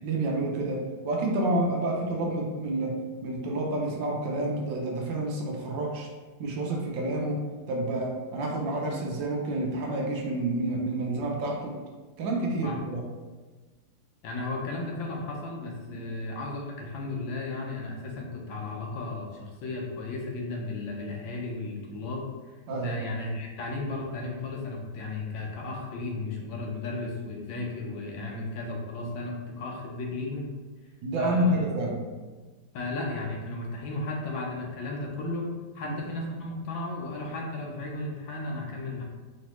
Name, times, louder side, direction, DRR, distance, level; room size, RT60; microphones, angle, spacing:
voice 1, 0.0-6.1 6.4-11.8 12.2-13.0 15.9-16.0 22.7-23.0 31.0-32.1 35.8-36.0, right 1 dB, 70° right, 0 dB, 1.4 m, -29 dB
voice 2, 14.2-22.3 22.8-30.5 31.2-31.5 32.7-35.5 35.7-39.0, left 2 dB, 75° left, -1 dB, 1.5 m, -34 dB
5.0 x 3.2 x 3.0 m, 1.3 s
omnidirectional pair, 2.2 m